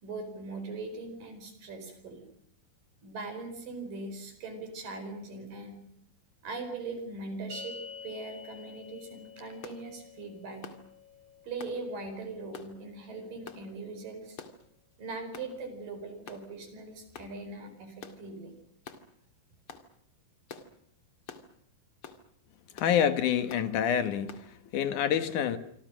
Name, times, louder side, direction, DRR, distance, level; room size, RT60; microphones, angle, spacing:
voice 1, 0.0-2.3 3.0-5.8 6.4-7.7 8.0-10.7 11.4-14.4 15.0-18.5, right 3 dB, 65° right, 6.3 m, -40 dB
sound 1, 7.5-14.0, left 4 dB, 25° right, 3.1 m, -49 dB
sound 2, 9.6-9.8 10.6-10.8 11.6-11.8 12.5-12.7 13.5-13.6 14.4-14.6 15.3-15.5 16.3-16.5 17.1-17.3 18.0-18.2 18.8-19.0 19.7-19.9 20.5-20.7 21.3-21.5 22.0-22.2 22.8-23.0 23.5-23.7 24.3-24.5, left 6 dB, 40° left, 2.6 m, -46 dB
voice 2, 22.7-25.6, left 9 dB, 60° left, 2.7 m, -27 dB
27.5 x 25.5 x 6.4 m
omnidirectional pair, 4.3 m